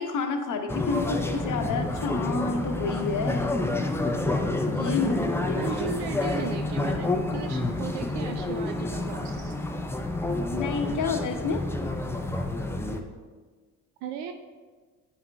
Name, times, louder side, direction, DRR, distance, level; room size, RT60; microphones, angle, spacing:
voice 1, 0.0-3.6 4.7-5.7 10.3-11.6, left 4 dB, 40° left, 5 dB, 0.9 m, -29 dB
sound 1, 0.7-13.0, left 2 dB, 5° left, 0.4 m, -29 dB
voice 2, 5.6-9.5 14.0-14.3, right 8 dB, 60° right, 7 dB, 0.5 m, -36 dB
8.9 x 5.5 x 2.3 m, 1.5 s
hypercardioid pair, 60°, 46 cm